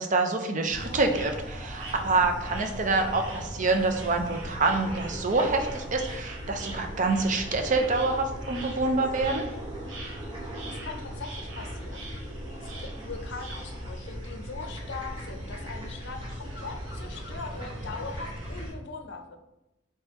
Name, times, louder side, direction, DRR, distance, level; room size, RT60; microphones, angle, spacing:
voice 1, 0.0-9.4, right 3 dB, 40° right, 5 dB, 0.5 m, -26 dB
sound 1, 0.7-18.7, right 1 dB, 25° right, 1.0 m, -42 dB
sound 2, 0.7-18.7, equal, 90° right, 0.9 m, -40 dB
voice 2, 10.8-12.1 12.5-19.4, left 4 dB, 65° left, 6 dB, 0.5 m, -41 dB
4.4 x 3.3 x 3.0 m, 0.93 s
head